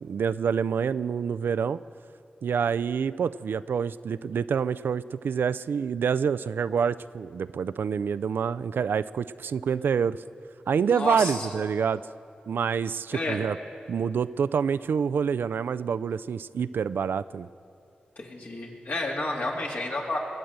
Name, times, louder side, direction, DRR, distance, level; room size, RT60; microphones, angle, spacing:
voice 1, 0.0-1.8 2.4-10.2 10.7-12.0 12.5-13.6 13.9-17.5, right 6 dB, 80° right, 15 dB, 0.3 m, -27 dB
voice 2, 10.9-11.5 13.1-13.4 18.2-20.2, left 2 dB, 65° left, -2 dB, 2.8 m, -30 dB
21.0 x 7.7 x 8.0 m, 2.6 s
cardioid pair, 45°, 3 cm